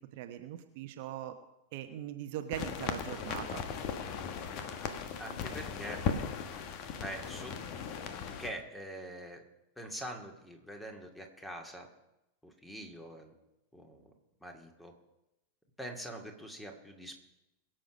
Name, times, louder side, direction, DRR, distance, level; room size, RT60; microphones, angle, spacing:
voice 1, 0.1-1.3 1.7-3.6, right 11 dB, 50° right, 7 dB, 1.0 m, -40 dB
sound 1, 2.5-8.5, left 6 dB, 40° left, 1.4 m, -37 dB
voice 2, 5.2-6.1 7.0-7.6 8.4-9.4 9.8-11.9 12.4-13.3 13.7-14.1 14.4-14.9 15.8-17.2, right 1 dB, 5° left, 3 dB, 2.3 m, -44 dB
22.0 x 7.7 x 5.2 m, 0.91 s
figure-of-eight pair, 90°, 0 cm